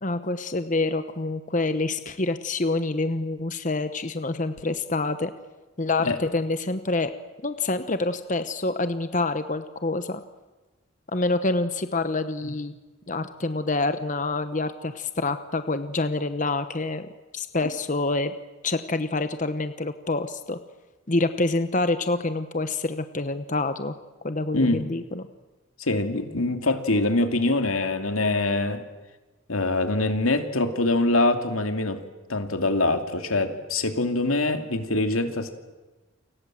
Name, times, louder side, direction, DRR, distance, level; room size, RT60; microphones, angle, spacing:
voice 1, 0.0-5.3 5.8-7.1 7.4-10.2 11.1-12.7 13.1-17.1 17.3-18.3 18.6-20.6 21.1-23.9 24.2-25.2, left 2 dB, 40° left, 10 dB, 1.1 m, -27 dB
voice 2, 24.5-24.9 25.8-28.8 29.5-32.0 32.3-35.5, left 2 dB, 90° left, 7 dB, 2.7 m, -24 dB
29.5 x 25.5 x 7.7 m, 1.2 s
head